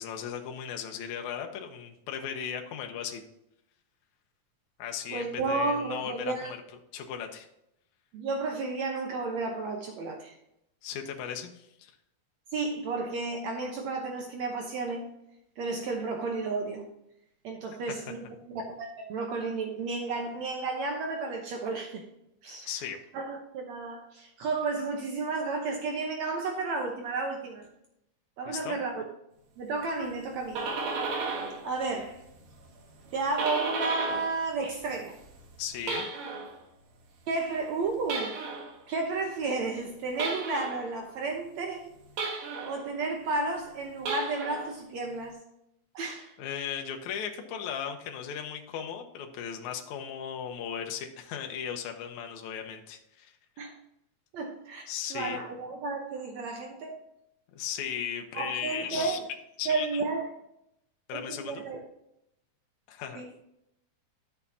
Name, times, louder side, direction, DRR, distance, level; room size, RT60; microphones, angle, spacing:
voice 1, 0.0-3.2 4.8-6.6 6.9-7.5 10.8-11.9 18.0-18.1 22.7-23.0 28.5-28.8 35.6-36.1 46.4-53.3 54.9-55.4 57.5-59.2 59.6-60.0 61.1-61.6 62.9-63.2, left 8 dB, 70° left, 3 dB, 2.1 m, -36 dB
voice 2, 5.1-6.5 8.1-10.3 12.5-15.1 15.6-16.9 17.4-18.2 18.5-22.0 22.4-22.7 23.1-27.6 28.4-29.0 29.6-30.6 31.6-32.2 33.1-35.2 37.3-38.3 38.9-41.9 42.6-45.4 45.9-46.3 53.6-53.7 54.3-57.0 58.3-59.2 59.7-60.3 61.1-61.8 63.2-63.3, right 3 dB, 65° right, 2 dB, 2.0 m, -32 dB
sound 1, 30.2-31.7 32.0-34.4 34.7-36.6 38.0-38.8 40.2-40.8 42.2-42.9 43.9-44.7, right 4 dB, 90° right, 3.4 m, -34 dB
11.5 x 7.1 x 2.8 m, 0.82 s
omnidirectional pair, 3.8 m